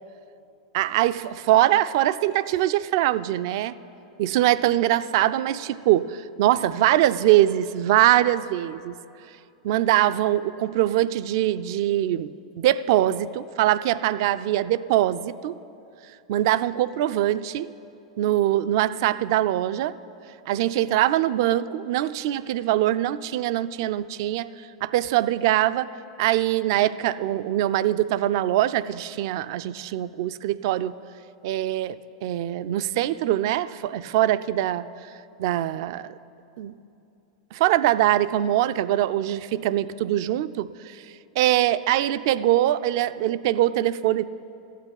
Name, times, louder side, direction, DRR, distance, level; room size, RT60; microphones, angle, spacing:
voice 1, 0.7-3.7 4.2-9.0 9.6-15.6 16.3-17.7 18.2-20.0 20.5-24.5 24.8-25.9 26.2-30.9 31.4-34.9 35.4-36.1 36.6-36.7 37.5-41.0 41.4-44.2, right 13 dB, 55° right, 15 dB, 0.4 m, -23 dB
14.0 x 8.4 x 8.7 m, 2.7 s
figure-of-eight pair, 90°, 3 cm